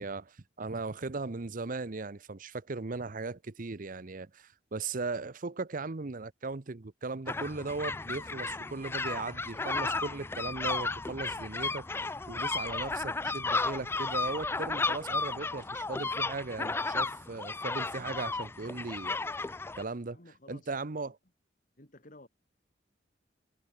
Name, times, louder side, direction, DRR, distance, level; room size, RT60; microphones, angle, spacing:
voice 1, 0.0-20.2 20.5-21.2, right 3 dB, 50° right, 0.8 m, -38 dB
sound 1, 7.3-19.8, left 3 dB, 15° left, 0.3 m, -34 dB
voice 2, 20.1-21.1 21.8-22.3, left 1 dB, 45° left, 3.9 m, -54 dB
head